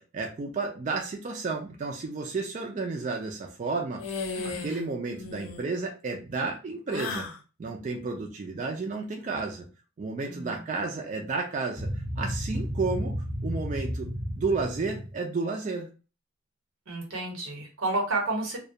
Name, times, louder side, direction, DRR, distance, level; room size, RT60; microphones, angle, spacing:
voice 1, 0.0-4.0 4.4-7.3 7.6-9.7 10.0-13.2 13.4-14.1 14.3-15.9, right 3 dB, 35° right, 1 dB, 0.3 m, -32 dB
sound 1, 4.0-4.8 5.1-5.7 6.9-7.4, left 4 dB, 75° left, 0.5 m, -35 dB
voice 2, 4.3-4.9 10.3-10.6 16.9-18.6, right 2 dB, 90° right, 0 dB, 0.9 m, -31 dB
sound 2, 11.8-15.1, equal, 10° left, 0.6 m, -32 dB
2.2 x 2.1 x 2.6 m, 0.34 s
head